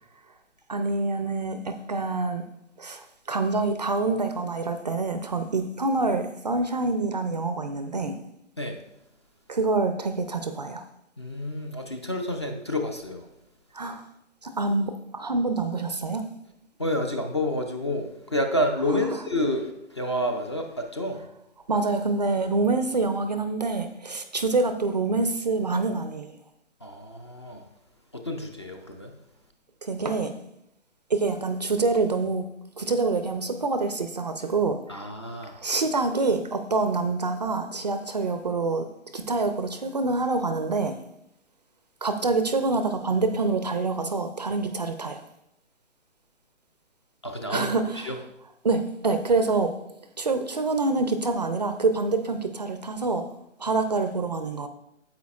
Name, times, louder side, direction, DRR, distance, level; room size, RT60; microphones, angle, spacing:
voice 1, 0.7-2.4 2.8-8.2 9.5-10.8 13.7-14.0 14.4-16.2 18.9-19.2 21.7-26.3 29.8-30.4 31.1-32.4 32.8-35.0 35.5-38.9 39.1-41.0 42.0-45.2 47.5-48.1 48.6-49.7 50.2-53.3 53.6-54.7, right 3 dB, 35° right, 9 dB, 0.4 m, -26 dB
voice 2, 11.2-13.3 16.8-21.2 26.8-27.6 28.2-29.1 34.9-35.5 47.2-47.7 48.0-48.2, left 1 dB, 25° left, 4 dB, 0.4 m, -29 dB
9.4 x 7.9 x 2.3 m, 0.81 s
figure-of-eight pair, 145°, 37 cm